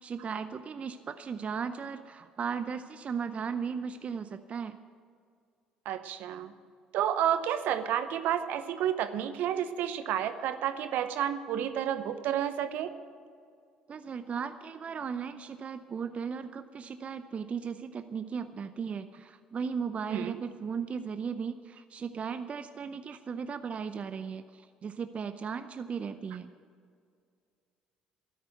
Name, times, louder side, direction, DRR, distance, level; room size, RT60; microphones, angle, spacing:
voice 1, 0.0-4.8 13.9-26.5, right 6 dB, 40° right, 11 dB, 0.6 m, -36 dB
voice 2, 5.8-6.5 6.9-12.9 20.1-20.3, right 10 dB, 65° right, 11 dB, 0.8 m, -30 dB
13.0 x 10.0 x 7.9 m, 2.2 s
hypercardioid pair, 55°, 3 cm